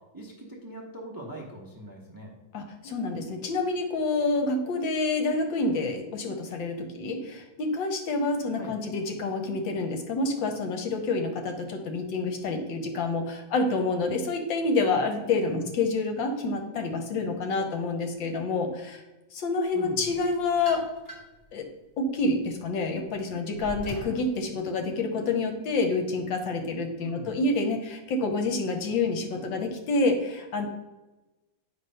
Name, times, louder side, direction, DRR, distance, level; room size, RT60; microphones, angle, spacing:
voice 1, 0.1-2.4 8.6-8.7 15.5-15.7 19.7-20.1 27.0-27.3, right 1 dB, 20° right, -2 dB, 0.6 m, -41 dB
voice 2, 2.5-19.0 19.3-20.8 21.5-21.7 22.0-30.7, left 3 dB, 70° left, 4 dB, 1.5 m, -28 dB
sound 1, 20.1-21.4 22.0-24.2, equal, 10° left, 1.2 m, -42 dB
8.8 x 3.3 x 5.5 m, 1.1 s
omnidirectional pair, 2.2 m